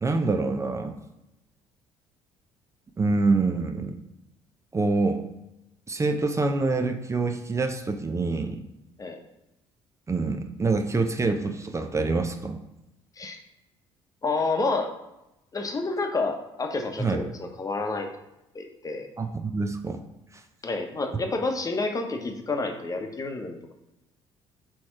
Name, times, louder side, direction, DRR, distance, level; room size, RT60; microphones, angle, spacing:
voice 1, 0.0-0.9 3.0-4.0 4.7-5.2 5.9-8.6 10.1-12.6 17.0-17.2 19.2-20.0, right 3 dB, 20° right, 6 dB, 0.7 m, -26 dB
voice 2, 14.2-14.9 15.5-18.1 18.5-19.1 20.6-23.7, left 3 dB, 25° left, 4 dB, 1.1 m, -29 dB
4.8 x 4.4 x 5.8 m, 0.91 s
figure-of-eight pair, 50°, 14 cm